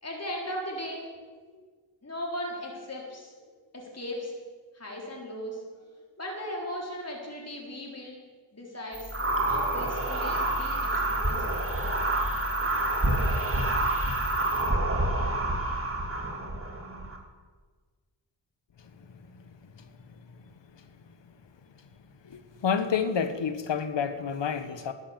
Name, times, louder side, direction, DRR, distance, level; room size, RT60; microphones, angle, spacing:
voice 1, 0.0-1.7 2.0-4.3 4.7-8.2 8.5-9.1 9.4-11.7, equal, 30° left, -2 dB, 3.9 m, -38 dB
sound 1, 8.9-14.7, left 1 dB, 5° right, 3.4 m, -38 dB
sound 2, 9.1-17.2, right 2 dB, 25° right, 2.8 m, -28 dB
voice 2, 22.2-24.9, left 6 dB, 65° left, 10 dB, 1.2 m, -29 dB
12.0 x 8.6 x 7.3 m, 1.4 s
cardioid pair, 45°, 47 cm